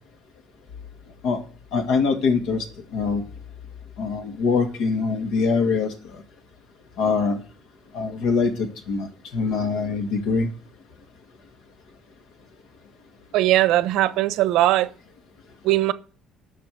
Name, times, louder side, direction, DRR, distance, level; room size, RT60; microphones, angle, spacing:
voice 1, 1.7-2.7 2.9-3.2 4.0-6.2 7.0-7.4 7.9-10.5, left 4 dB, 80° left, 2.3 m, -23 dB
voice 2, 13.3-14.9 15.6-15.9, right 15 dB, 80° right, 0.8 m, -19 dB
10.5 x 6.0 x 7.7 m
cardioid pair, 120°, 0 cm